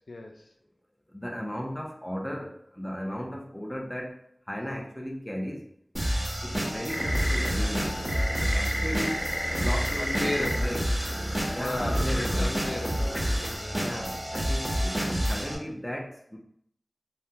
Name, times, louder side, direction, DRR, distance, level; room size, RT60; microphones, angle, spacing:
voice 1, 0.1-0.5 6.4-6.6 10.0-10.7 11.3-13.3 13.5-14.0, left 2 dB, 75° left, 2 dB, 0.3 m, -36 dB
voice 2, 1.1-4.2 4.5-5.7 6.0-7.9 8.4-9.3 9.5-10.9 11.5-12.5 13.7-16.4, equal, 15° left, 1 dB, 0.6 m, -36 dB
sound 1, 6.0-15.6, equal, 15° right, 1.0 m, -29 dB
sound 2, 6.9-13.6, equal, 30° left, 1.1 m, -34 dB
3.5 x 2.2 x 2.7 m, 0.71 s
wide cardioid pair, 45°, 0 cm